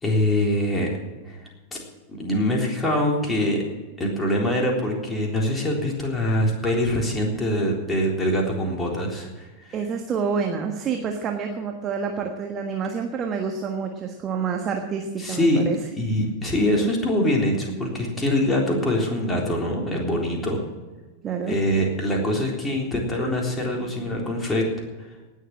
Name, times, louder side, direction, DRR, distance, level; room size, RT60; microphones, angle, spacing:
voice 1, 0.0-0.9 1.3-1.8 2.1-3.6 4.0-9.7 15.2-15.6 16.0-20.6 21.4-24.6, left 1 dB, 15° left, -1 dB, 3.7 m, -24 dB
voice 2, 9.7-15.8 21.2-21.6, right 6 dB, 30° right, 3 dB, 1.5 m, -28 dB
18.5 x 7.4 x 7.5 m, 1.2 s
figure-of-eight pair, 90°, 0 cm